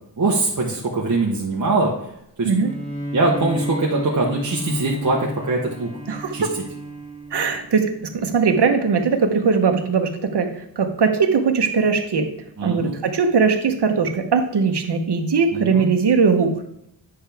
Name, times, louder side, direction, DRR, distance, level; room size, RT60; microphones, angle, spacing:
voice 1, 0.2-1.9 2.4-2.5 3.1-5.9 6.3-6.5 12.6-13.0 15.5-15.8, right 3 dB, 40° right, -3 dB, 1.0 m, -22 dB
Bowed string instrument, 2.5-8.0, equal, 20° left, 1.9 m, -32 dB
voice 2, 6.1-6.5 7.3-10.5 10.8-12.3 12.6-16.5, right 5 dB, 65° right, 5 dB, 1.0 m, -20 dB
9.7 x 5.7 x 3.4 m, 0.77 s
wide cardioid pair, 165°, 44 cm